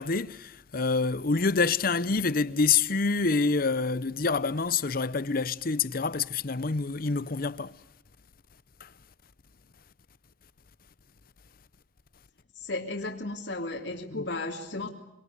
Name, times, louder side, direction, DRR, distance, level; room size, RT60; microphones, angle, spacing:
voice 1, 0.0-7.8 8.8-8.9 14.1-14.2, left 4 dB, 55° left, 0.8 m, -27 dB
voice 2, 12.5-14.9, left 2 dB, 80° left, 2.5 m, -34 dB
25.5 x 25.5 x 6.8 m
head